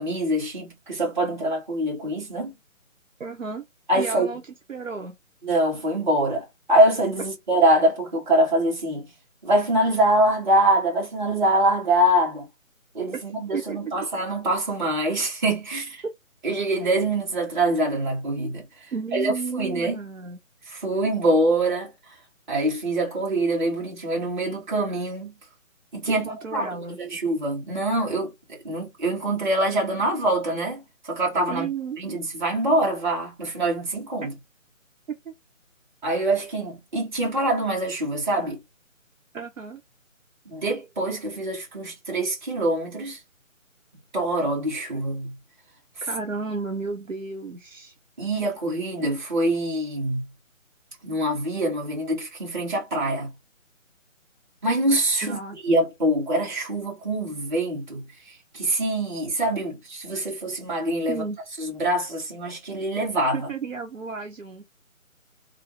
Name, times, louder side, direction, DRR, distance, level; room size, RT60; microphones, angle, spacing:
voice 1, 0.0-2.5 3.9-4.3 5.4-9.1 9.4-12.5 12.9-16.0 16.4-18.6 19.1-20.0 20.7-21.9 22.5-25.4 25.9-31.7 32.0-34.4 36.0-38.6 40.5-43.2 44.1-45.4 48.2-50.3 51.0-53.3 54.6-58.1 58.5-61.2 61.6-63.5, right 1 dB, 35° right, 1.9 m, -24 dB
voice 2, 3.2-3.6 3.9-4.4 4.7-5.2 13.1-13.2 13.5-13.8 18.9-20.4 26.1-27.0 31.5-32.0 34.2-34.3 35.1-35.3 39.3-39.8 46.1-47.9 55.2-55.6 61.0-61.4 63.3-64.7, right 5 dB, 70° right, 1.0 m, -32 dB
3.4 x 2.0 x 4.0 m
figure-of-eight pair, 155°, 41 cm